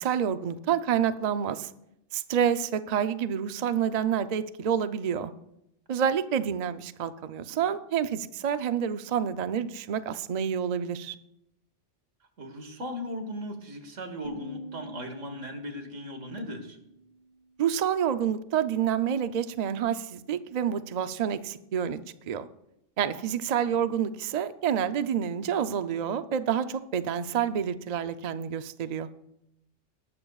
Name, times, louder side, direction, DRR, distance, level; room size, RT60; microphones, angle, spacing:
voice 1, 0.0-1.7 2.1-5.3 5.9-11.2 17.6-22.0 22.3-22.5 23.0-29.1, right 8 dB, 50° right, 11 dB, 0.5 m, -28 dB
voice 2, 12.4-16.8 23.7-23.8, equal, 85° right, 6 dB, 2.0 m, -38 dB
sound 1, 14.2-17.2, equal, 50° left, 5.0 m, -45 dB
18.5 x 12.5 x 2.4 m, 0.83 s
omnidirectional pair, 1.3 m